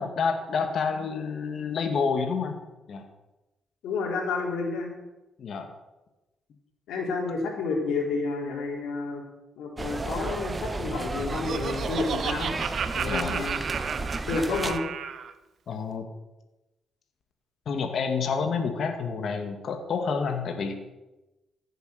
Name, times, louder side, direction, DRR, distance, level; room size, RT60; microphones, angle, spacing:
voice 1, 0.0-2.6 2.9-3.1 5.4-5.7 13.1-13.4 15.7-16.1 17.7-20.7, left 5 dB, 60° left, 5 dB, 2.0 m, -29 dB
voice 2, 3.8-4.9 6.9-9.2 9.6-12.5 12.9-13.6 14.3-14.8, left 4 dB, 80° left, -1 dB, 4.0 m, -30 dB
sound 1, 9.8-14.8, right 3 dB, 25° right, 0.9 m, -33 dB
Laughter, 10.9-15.3, right 7 dB, 60° right, 0.8 m, -33 dB
14.5 x 8.1 x 6.6 m, 1.0 s
cardioid pair, 90°, 0 cm